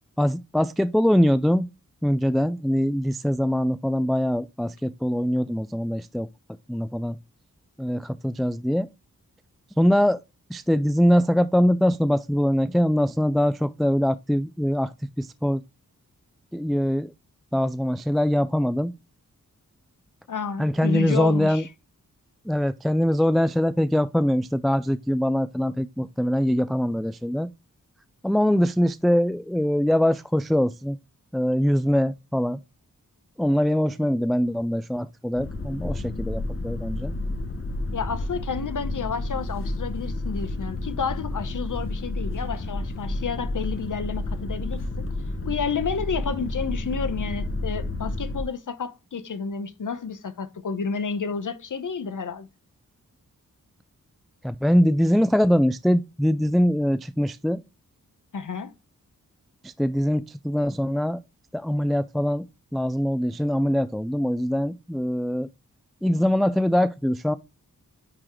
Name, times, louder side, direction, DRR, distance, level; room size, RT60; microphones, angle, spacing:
voice 1, 0.2-1.7 2.0-6.3 6.7-7.2 7.8-8.9 9.8-10.2 10.5-15.6 16.5-17.1 17.5-18.9 20.6-21.7 22.5-27.5 28.2-31.0 31.3-32.6 33.4-37.1 54.4-57.6 59.6-61.2 61.5-62.5 62.7-65.5 66.0-67.3, equal, ahead, 0.3 m, -23 dB
voice 2, 20.3-21.7 37.9-45.1 45.5-52.5 58.3-58.7, left 5 dB, 65° left, 0.9 m, -30 dB
sound 1, 35.4-48.4, left 2 dB, 40° left, 1.2 m, -30 dB
9.9 x 3.7 x 3.1 m
cardioid pair, 50°, 34 cm